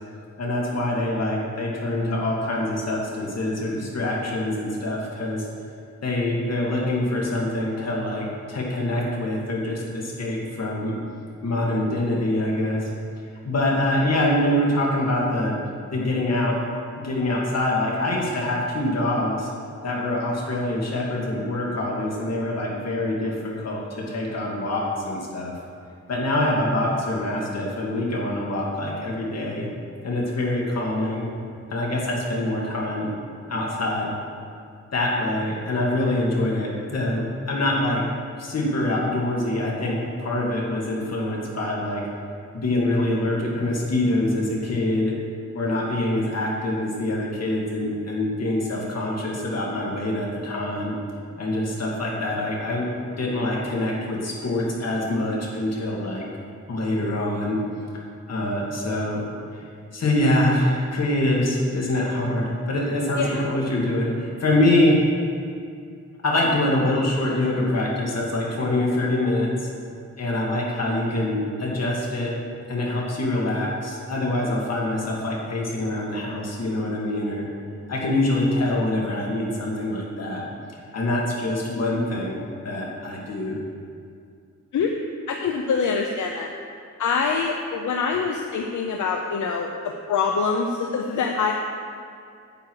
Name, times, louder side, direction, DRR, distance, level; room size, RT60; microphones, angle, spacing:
voice 1, 0.4-5.5 6.0-11.0 11.4-12.9 13.4-15.6 15.9-16.6 17.0-19.5 19.8-25.6 26.1-29.7 30.0-31.3 31.7-33.1 33.5-34.1 34.9-38.0 38.4-42.1 42.5-45.1 45.5-50.9 51.4-56.3 56.7-57.6 58.3-59.2 59.5-59.6 59.9-65.0 66.2-69.7 70.2-72.3 72.7-77.4 77.9-80.4 80.9-83.6, left 1 dB, 60° left, -3 dB, 2.2 m, -25 dB
voice 2, 85.3-86.5 87.0-91.5, left 5 dB, 85° left, 3 dB, 0.7 m, -25 dB
10.0 x 8.2 x 4.7 m, 2.3 s
wide cardioid pair, 115°, 29 cm